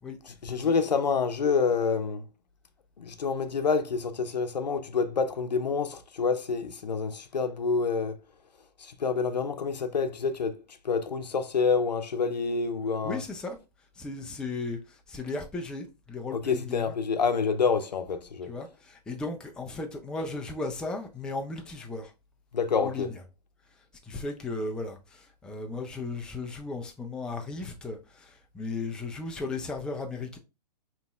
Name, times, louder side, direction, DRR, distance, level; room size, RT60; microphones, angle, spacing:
voice 1, 0.2-2.2 3.0-8.2 8.8-13.2 16.3-18.5 22.5-23.1, left 5 dB, 90° left, 0.6 m, -28 dB
voice 2, 13.0-13.6 14.0-16.9 18.5-22.1 22.8-23.1 24.0-30.4, left 3 dB, 5° left, 0.3 m, -36 dB
5.1 x 3.0 x 2.3 m
hypercardioid pair, 125°, 21 cm